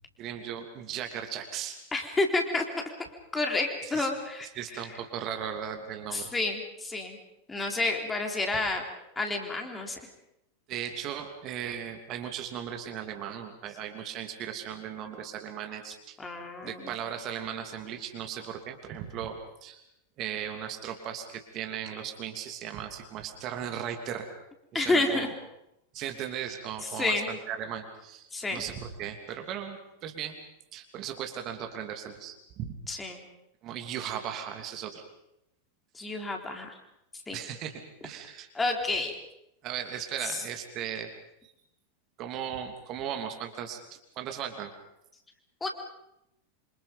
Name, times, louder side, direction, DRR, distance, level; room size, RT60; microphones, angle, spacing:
voice 1, 0.2-1.8 3.8-4.1 4.4-6.3 10.7-16.2 16.6-19.8 20.2-24.3 24.7-25.3 25.9-30.3 30.7-32.7 33.6-35.0 37.3-37.7 38.0-38.5 39.6-41.1 41.4-41.5 42.2-43.8 44.2-44.7, right 9 dB, 35° right, 4 dB, 2.9 m, -37 dB
voice 2, 1.9-2.6 3.3-4.8 6.1-7.2 7.5-8.8 9.2-10.0 16.2-16.9 24.7-25.3 26.9-27.3 28.3-28.6 32.9-33.2 35.9-36.8 37.3-37.4 38.5-39.1 40.2-40.3 45.6-45.7, left 2 dB, 10° left, 3 dB, 3.9 m, -29 dB
27.5 x 26.0 x 5.4 m, 0.83 s
figure-of-eight pair, 90°, 0 cm